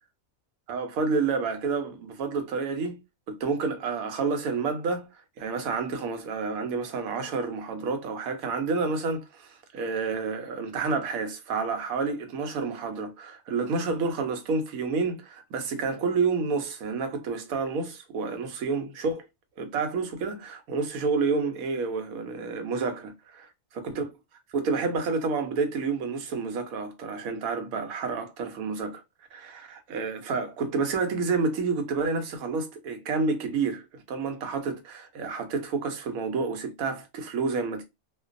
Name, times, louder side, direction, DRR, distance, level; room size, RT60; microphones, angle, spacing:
voice 1, 0.7-3.0 3.3-19.3 19.6-23.4 23.7-24.1 24.5-29.0 29.3-37.8, right 4 dB, 80° right, 1.1 m, -29 dB
2.5 x 2.2 x 2.4 m
omnidirectional pair, 1.5 m